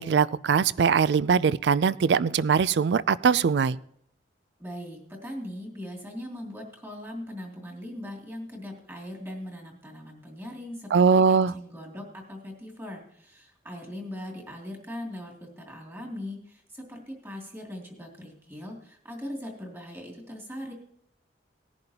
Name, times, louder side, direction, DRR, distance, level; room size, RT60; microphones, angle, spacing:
voice 1, 0.0-3.8 10.9-11.5, right 6 dB, 70° right, 19 dB, 0.4 m, -21 dB
voice 2, 4.6-20.7, left 1 dB, 15° right, 0 dB, 2.6 m, -40 dB
18.5 x 10.5 x 2.9 m, 0.69 s
head